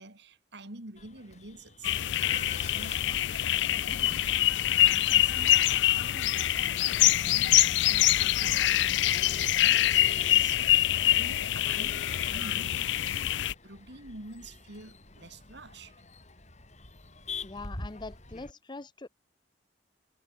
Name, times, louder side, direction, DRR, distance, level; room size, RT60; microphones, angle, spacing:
voice 1, 0.0-13.3 13.6-15.9, right 2 dB, 65° right, 4.6 m, -48 dB
Male speech man speaking / Laughter / Chatter, 1.0-18.5, left 4 dB, 40° left, 5.1 m, -47 dB
sound 1, 1.8-13.5, left 14 dB, 70° left, 0.4 m, -25 dB
voice 2, 17.4-19.1, left 3 dB, 25° left, 0.7 m, -42 dB
head